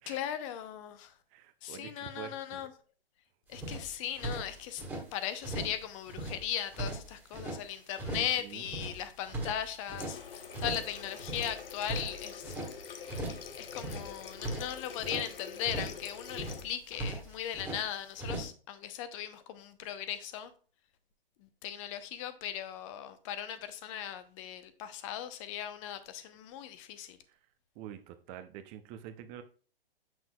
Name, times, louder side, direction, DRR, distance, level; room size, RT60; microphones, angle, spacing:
voice 1, 0.1-1.1 1.6-2.7 3.5-4.8 5.1-12.6 12.8-20.5 21.4-27.2, left 10 dB, 35° left, 0.7 m, -38 dB
voice 2, 1.3-2.7 7.3-7.5 8.1-8.7 27.3-27.4 27.8-29.4, right 11 dB, 25° right, 0.6 m, -47 dB
sound 1, 3.5-5.0 5.4-5.8 6.1-7.6 8.0-8.4 8.6-10.2 10.5-10.9 11.2-12.7 13.1-13.5 13.7-15.3 15.6-16.0 16.3-17.8 18.2-18.5, right 1 dB, 5° right, 1.7 m, -39 dB
Water tap faucet, 10.0-16.7, left 7 dB, 70° left, 0.9 m, -45 dB
7.1 x 6.1 x 2.3 m
hypercardioid pair, 120°, 29 cm